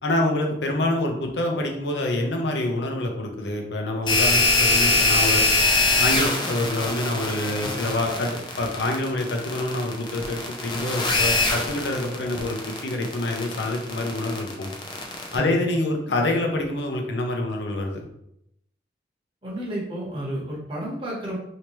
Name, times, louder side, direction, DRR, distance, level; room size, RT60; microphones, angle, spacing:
voice 1, 0.0-5.4 6.0-14.7 15.3-18.0, left 1 dB, 80° left, 2 dB, 0.6 m, -26 dB
sound 1, 4.1-15.4, left 2 dB, 25° left, 0.5 m, -23 dB
voice 2, 19.4-21.4, right 1 dB, 30° right, -4 dB, 1.0 m, -31 dB
3.3 x 2.8 x 3.0 m, 0.77 s
head